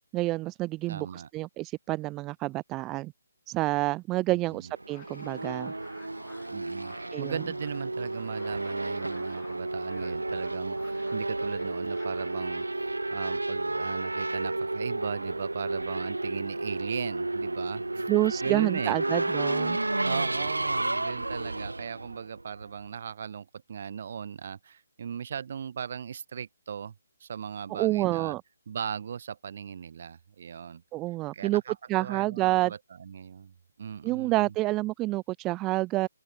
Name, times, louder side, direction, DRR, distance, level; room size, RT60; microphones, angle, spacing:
voice 1, 0.1-3.1 3.5-5.7 7.1-7.4 18.1-19.8 27.7-28.4 30.9-31.6 31.9-32.7 34.0-36.1, right 19 dB, 20° right, 0.5 m, -28 dB
voice 2, 0.9-1.3 4.3-4.7 6.5-12.7 13.1-18.1 18.4-19.0 20.0-26.9 27.2-28.4 28.7-30.8 31.3-34.5, right 7 dB, 50° right, 1.5 m, -38 dB
Race car auto racing / Accelerating revving vroom, 4.7-22.9, right 2 dB, 85° right, 1.2 m, -32 dB
sound 1, 4.9-12.7, left 21 dB, 20° left, 5.6 m, -58 dB
open air
figure-of-eight pair, 145°, 0 cm